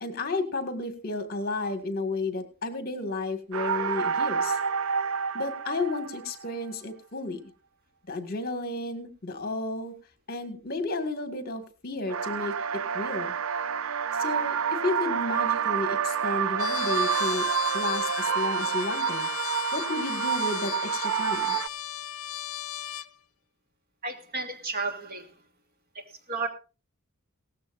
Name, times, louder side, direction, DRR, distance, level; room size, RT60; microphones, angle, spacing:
voice 1, 0.0-4.6 5.3-7.4 8.1-9.9 10.3-12.5 12.9-13.4 14.1-17.5 17.7-19.3 19.7-21.6, left 2 dB, 45° left, 8 dB, 1.9 m, -32 dB
sound 1, 3.5-6.5 12.1-21.7, right 7 dB, 65° right, 0.6 m, -28 dB
Trumpet, 16.6-23.1, left 12 dB, 65° left, 0.6 m, -36 dB
voice 2, 24.0-25.3 26.3-26.5, right 3 dB, 45° right, 5 dB, 2.8 m, -32 dB
18.0 x 15.0 x 2.6 m, 0.32 s
head